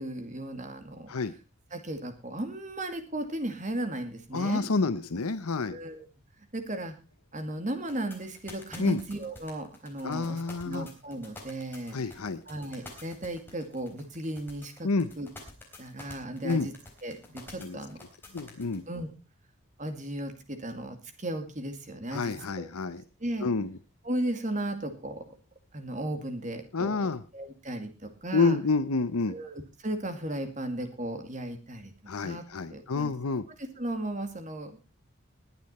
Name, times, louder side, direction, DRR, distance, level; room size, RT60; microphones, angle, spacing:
voice 1, 0.0-1.1 1.7-4.6 5.7-6.1 6.5-6.9 7.3-12.0 12.5-14.9 15.2-15.3 15.8-16.7 17.0-18.0 18.9-19.1 19.8-22.7 23.2-23.5 24.0-25.4 25.7-27.0 27.3-28.6 29.3-31.9 32.2-32.4 32.7-33.1 33.8-34.8, right 1 dB, 35° right, 7 dB, 2.3 m, -35 dB
voice 2, 4.3-5.8 8.8-9.0 10.0-10.9 11.9-12.4 14.8-15.1 16.4-16.7 17.6-17.8 18.3-18.8 22.1-23.0 23.4-23.8 26.7-27.2 28.3-29.3 32.1-33.4, left 4 dB, 90° left, 13 dB, 0.8 m, -28 dB
sound 1, 7.9-18.8, left 2 dB, 10° left, 3.8 m, -47 dB
20.0 x 8.7 x 4.3 m, 0.30 s
head